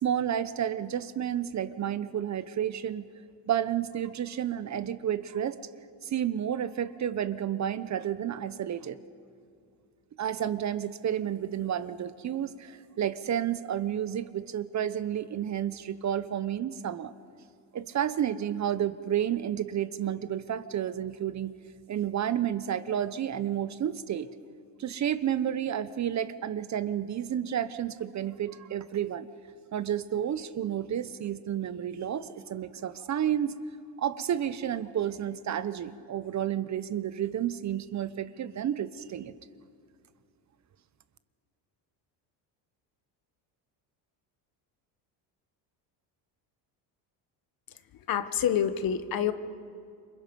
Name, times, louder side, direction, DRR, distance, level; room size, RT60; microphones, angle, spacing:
voice 1, 0.0-3.1 3.5-5.6 6.0-9.0 10.2-17.1 17.7-21.5 21.9-24.3 24.8-29.3 29.7-33.6 34.0-39.3, right 10 dB, 40° right, 14 dB, 0.8 m, -31 dB
voice 2, 47.7-49.3, left 9 dB, 50° left, 11 dB, 1.3 m, -28 dB
27.5 x 24.5 x 5.4 m, 2.4 s
cardioid pair, 105°, 46 cm